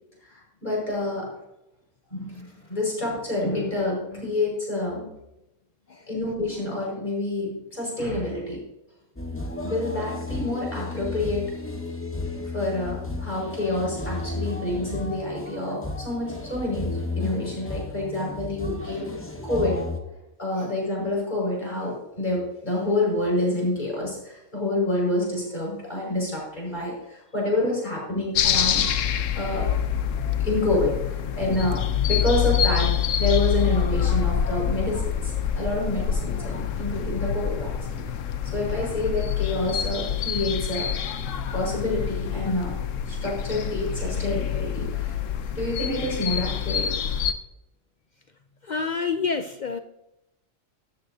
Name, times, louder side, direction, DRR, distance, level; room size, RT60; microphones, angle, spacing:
voice 1, 0.2-1.3 2.1-5.1 6.1-8.6 9.6-11.5 12.3-19.1 19.4-19.8 20.4-28.8 29.3-29.7 30.4-38.0 38.5-40.9 41.5-42.7 43.1-45.1 45.6-46.9, left 2 dB, 35° left, -4 dB, 5.6 m, -28 dB
sound 1, 9.2-20.0, left 3 dB, 10° left, 0.9 m, -33 dB
sound 2, 28.4-47.3, left 8 dB, 80° left, 1.1 m, -26 dB
voice 2, 48.6-49.8, left 5 dB, 55° left, 9 dB, 0.5 m, -28 dB
14.5 x 13.0 x 2.7 m, 0.88 s
omnidirectional pair, 1.3 m